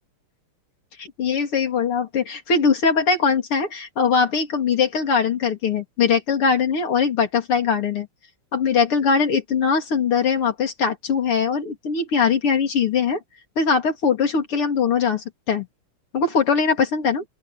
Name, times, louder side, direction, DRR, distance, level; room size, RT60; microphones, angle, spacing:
voice 1, 1.0-8.1 8.5-13.2 13.6-15.7 16.1-17.2, left 5 dB, 80° left, 3.9 m, -21 dB
open air
omnidirectional pair, 2.4 m